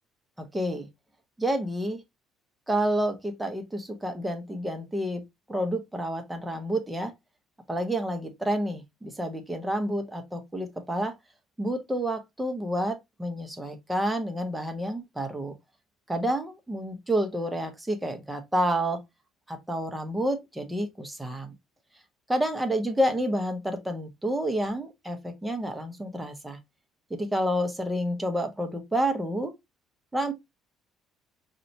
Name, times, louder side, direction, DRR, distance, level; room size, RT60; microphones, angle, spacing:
voice 1, 0.4-0.9 1.4-2.0 2.7-5.2 5.5-7.1 7.7-11.1 11.6-15.5 16.1-19.0 19.5-21.5 22.3-26.6 27.1-29.5 30.1-30.3, right 1 dB, 5° right, 0.6 m, -29 dB
4.0 x 2.1 x 2.6 m
cardioid pair, 155°, 0 cm